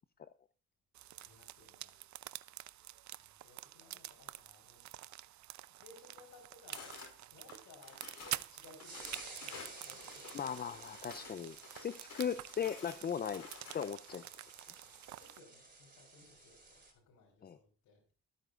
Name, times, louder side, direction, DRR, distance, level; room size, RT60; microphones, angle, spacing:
sound 1, 0.9-15.4, right 14 dB, 70° right, 0.6 m, -48 dB
voice 1, 1.2-2.0 2.3-2.8 3.2-4.9 5.7-10.4 15.2-18.0, left 3 dB, 80° left, -3 dB, 4.2 m, -61 dB
sound 2, 6.7-7.1 7.5-8.4 8.8-11.3 11.6-14.1, left 5 dB, 60° left, 5.2 m, -52 dB
sound 3, 7.9-16.9, right 3 dB, 30° right, 4.9 m, -54 dB
voice 2, 10.3-13.5 13.7-14.3 17.4-17.6, left 8 dB, 30° left, 13 dB, 0.6 m, -38 dB
27.5 x 9.3 x 2.5 m, 0.31 s
cardioid pair, 90°, 30 cm